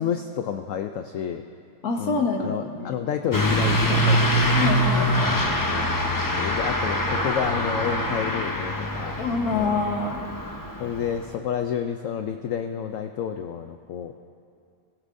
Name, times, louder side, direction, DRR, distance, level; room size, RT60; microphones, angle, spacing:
voice 1, 0.0-1.4 2.0-4.7 5.4-5.9 6.4-9.2 9.5-9.8 10.8-14.1, left 8 dB, 75° left, 7 dB, 0.7 m, -30 dB
voice 2, 1.8-2.9 4.6-5.4 9.2-10.2, left 3 dB, 60° left, 2 dB, 1.7 m, -26 dB
Truck / Accelerating revving vroom, 3.3-11.3, equal, 30° left, 0.4 m, -24 dB
18.5 x 16.0 x 2.6 m, 2.3 s
omnidirectional pair, 1.9 m